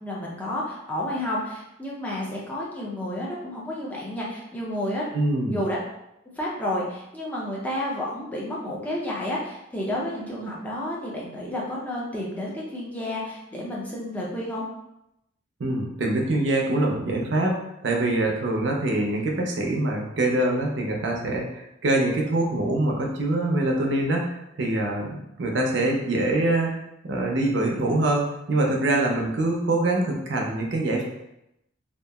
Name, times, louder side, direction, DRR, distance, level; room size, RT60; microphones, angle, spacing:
voice 1, 0.0-5.1 5.5-5.8 6.3-14.7, left 1 dB, 10° left, -5 dB, 0.5 m, -31 dB
voice 2, 5.1-5.6 15.6-17.6 17.8-26.8 27.1-31.0, right 2 dB, 60° right, 0 dB, 0.5 m, -24 dB
2.8 x 2.4 x 2.3 m, 0.86 s
head